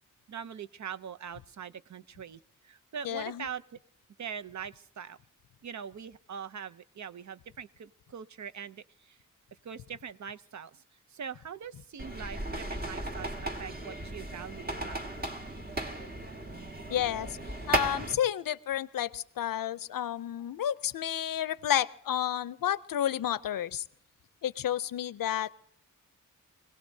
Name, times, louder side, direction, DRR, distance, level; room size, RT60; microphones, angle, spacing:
voice 1, 0.3-3.6 4.2-5.2 5.6-9.2 9.6-10.8 11.1-15.1, right 7 dB, 60° right, 12 dB, 0.6 m, -42 dB
voice 2, 3.0-3.5 16.9-17.4 17.7-23.8 24.4-25.5, left 11 dB, 85° left, 17 dB, 0.5 m, -31 dB
sound 1, 12.0-18.1, right 1 dB, 30° right, 1.5 m, -35 dB
24.5 x 17.5 x 2.7 m, 0.67 s
wide cardioid pair, 110°, 33 cm